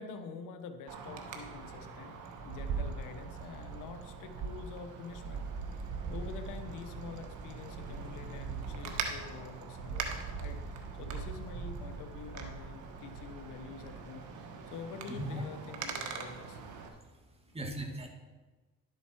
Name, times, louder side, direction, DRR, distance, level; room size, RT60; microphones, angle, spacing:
voice 1, 0.0-2.2 2.4-5.5 5.8-16.6 17.5-17.6, left 5 dB, 80° left, 8 dB, 1.0 m, -47 dB
Wind, 0.9-16.9, right 5 dB, 75° right, 1.4 m, -41 dB
voice 2, 16.8-18.1, right 1 dB, 20° right, 1 dB, 2.2 m, -40 dB
11.5 x 8.0 x 4.5 m, 1.2 s
cardioid pair, 85°, 30 cm